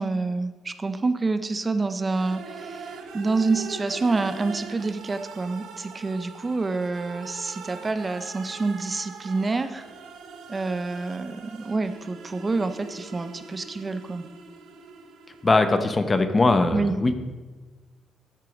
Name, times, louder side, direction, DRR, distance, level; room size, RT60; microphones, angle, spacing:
voice 1, 0.0-9.8 10.5-14.2 16.7-17.0, right 3 dB, 30° right, 10 dB, 0.6 m, -27 dB
sound 1, 2.0-15.9, right 5 dB, 80° right, 0.9 m, -42 dB
voice 2, 15.4-17.1, left 3 dB, 30° left, 8 dB, 1.0 m, -20 dB
13.0 x 4.7 x 5.1 m, 1.3 s
supercardioid pair, 60°, 0 cm